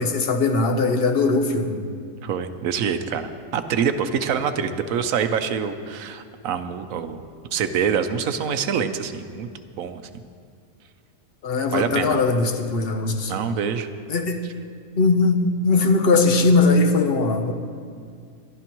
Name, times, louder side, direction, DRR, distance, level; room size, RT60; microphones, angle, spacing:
voice 1, 0.0-1.8 11.4-13.3 14.1-14.4 15.0-17.5, left 3 dB, 50° left, 6 dB, 1.0 m, -20 dB
voice 2, 2.2-9.5 9.8-10.0 11.7-12.2 13.3-13.9, right 7 dB, 75° right, 9 dB, 1.1 m, -25 dB
22.5 x 12.0 x 3.0 m, 2.2 s
omnidirectional pair, 1.4 m